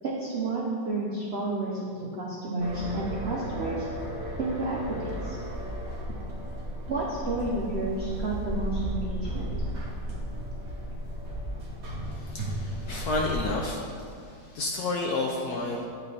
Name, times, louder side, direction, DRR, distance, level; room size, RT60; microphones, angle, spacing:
voice 1, 0.0-3.9 4.4-5.4 6.9-9.5, right 2 dB, 80° right, -4 dB, 0.5 m, -31 dB
sound 1, 2.6-13.5, right 1 dB, 45° right, 1.0 m, -34 dB
voice 2, 12.1-13.8 14.2-15.9, left 2 dB, 75° left, 0 dB, 0.9 m, -31 dB
8.4 x 4.9 x 3.3 m, 2.4 s
omnidirectional pair, 2.1 m